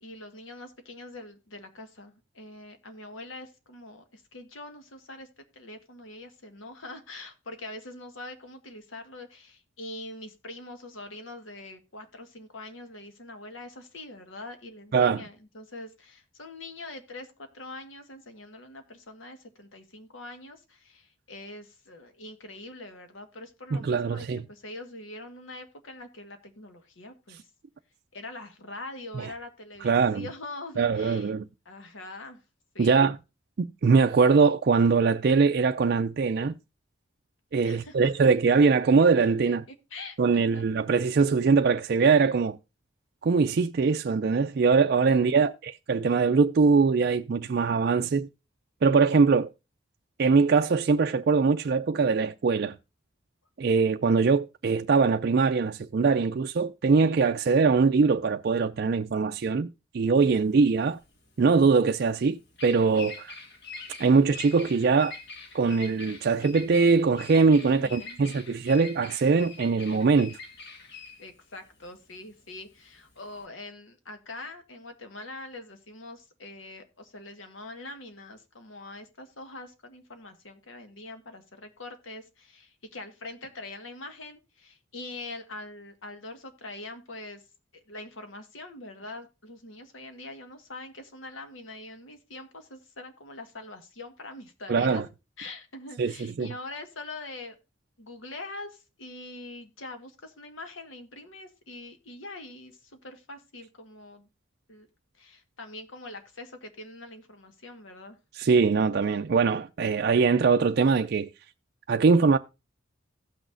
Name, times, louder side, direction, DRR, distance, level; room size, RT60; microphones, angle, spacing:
voice 1, 0.0-5.3 5.5-27.5 28.1-31.3 31.6-32.4 32.7-33.1 37.6-37.9 39.5-39.6 39.9-40.6 45.1-45.5 60.2-60.4 67.6-68.2 71.2-87.4 87.7-95.0 95.4-97.6 98.0-104.3 104.7-104.9 105.1-108.2, left 2 dB, 85° left, 1.6 m, -43 dB
voice 2, 14.9-15.2 23.7-24.4 29.8-30.2 30.8-31.4 32.8-33.2 33.6-36.5 37.5-39.6 40.2-42.6 43.2-48.3 48.8-49.5 50.2-52.8 53.6-59.7 59.9-61.0 61.4-63.3 64.0-65.1 65.5-70.4 94.7-95.0 96.0-96.5 108.4-111.3 111.9-112.4, right 4 dB, 55° right, 0.4 m, -22 dB
Bird vocalization bird call bird song, 60.2-73.4, left 4 dB, 60° left, 1.6 m, -44 dB
17.0 x 6.1 x 2.5 m
head